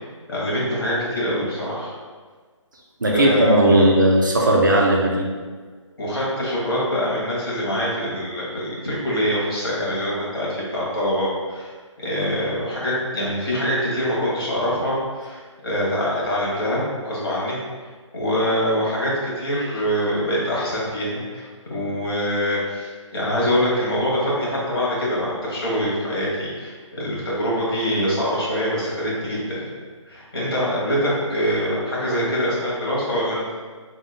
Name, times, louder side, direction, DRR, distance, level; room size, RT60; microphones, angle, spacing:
voice 1, 0.3-1.9 3.1-3.8 6.0-11.7 12.0-17.6 18.1-29.7 30.1-33.5, equal, 45° left, -7 dB, 1.4 m, -24 dB
voice 2, 3.0-5.3, right 1 dB, 40° right, -1 dB, 0.5 m, -17 dB
3.7 x 3.6 x 2.2 m, 1.5 s
hypercardioid pair, 180°, 16 cm